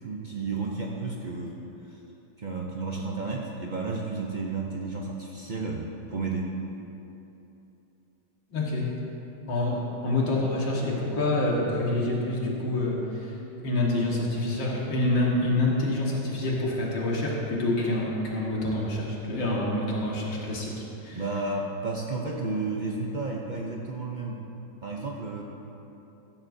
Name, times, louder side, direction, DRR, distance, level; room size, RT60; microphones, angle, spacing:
voice 1, 0.0-2.0 2.4-6.5 9.7-9.8 21.1-24.4 24.8-25.4, right 3 dB, 70° right, -1 dB, 0.4 m, -32 dB
voice 2, 8.5-9.0 9.5-13.4 13.6-21.2, left 2 dB, 85° left, -3 dB, 2.4 m, -27 dB
15.5 x 13.0 x 2.7 m, 2.9 s
omnidirectional pair, 2.0 m